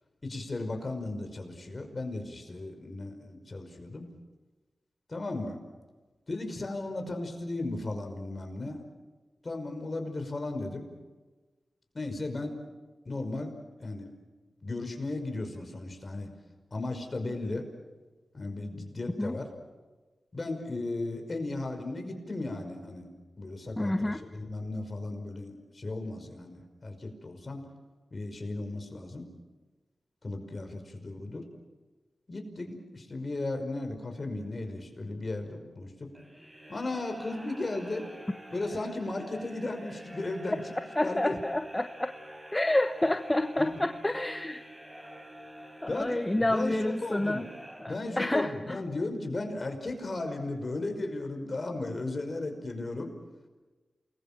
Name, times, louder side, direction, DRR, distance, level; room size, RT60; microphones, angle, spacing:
voice 1, 0.2-4.1 5.1-5.6 6.3-8.8 9.4-10.9 11.9-12.6 13.1-13.5 13.8-14.2 14.6-16.3 16.7-17.6 18.3-19.5 20.3-23.1 23.4-27.7 28.1-29.3 30.2-31.4 32.3-36.1 36.7-38.1 38.5-40.6 41.0-41.3 43.6-43.7 45.9-47.5 47.9-53.1, left 2 dB, 45° left, 5 dB, 5.5 m, -35 dB
voice 2, 23.8-24.2 40.9-42.1 42.5-44.6 45.8-47.5 47.8-48.8, left 1 dB, 20° left, 7 dB, 1.2 m, -29 dB
sound 1, 36.1-48.4, right 1 dB, 15° right, 5.3 m, -48 dB
28.5 x 21.5 x 7.5 m, 1.3 s
cardioid pair, 55°, 0 cm